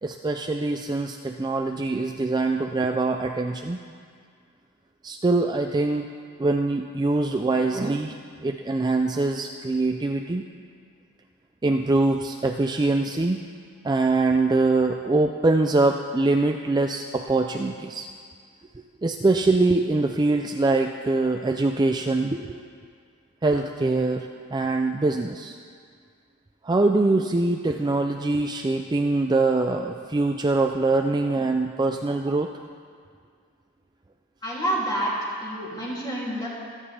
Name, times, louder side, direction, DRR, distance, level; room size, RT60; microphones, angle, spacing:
voice 1, 0.0-3.8 5.0-6.1 6.4-8.2 8.4-10.4 11.6-13.4 13.8-18.1 19.0-22.6 23.4-25.6 26.6-32.5, right 2 dB, 20° right, 4 dB, 0.4 m, -23 dB
voice 2, 34.4-35.1 35.4-36.5, right 1 dB, 20° left, -6 dB, 2.9 m, -28 dB
24.5 x 9.3 x 3.3 m, 2.1 s
head